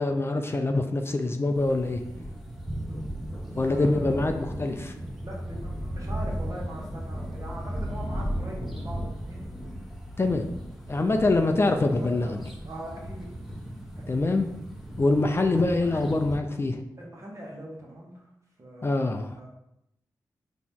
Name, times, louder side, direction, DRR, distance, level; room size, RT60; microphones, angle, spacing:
voice 1, 0.0-2.0 3.6-4.9 10.2-10.5 10.9-12.4 14.1-14.5 15.0-16.8 18.8-19.4, left 2 dB, 30° left, 5 dB, 0.4 m, -24 dB
sound 1, 1.5-16.4, equal, ahead, 1.0 m, -36 dB
voice 2, 2.9-4.2 5.2-9.5 12.0-13.3 14.0-14.3 15.7-16.0 17.0-18.3 18.6-19.5, right 1 dB, 40° right, -3 dB, 1.5 m, -41 dB
4.1 x 2.9 x 3.6 m, 0.81 s
cardioid pair, 50°, 8 cm